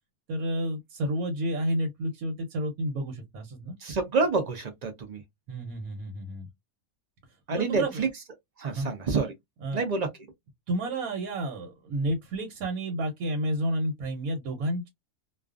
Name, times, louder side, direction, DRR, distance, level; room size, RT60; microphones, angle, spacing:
voice 1, 0.3-3.8 5.5-6.5 7.5-8.0 8.7-8.9 9.6-9.8 10.7-14.9, right 1 dB, 85° right, 1.2 m, -30 dB
voice 2, 3.8-5.2 7.5-8.1 8.6-9.3 9.7-10.1, right 4 dB, 65° right, 0.4 m, -27 dB
2.4 x 2.4 x 2.3 m
omnidirectional pair, 1.5 m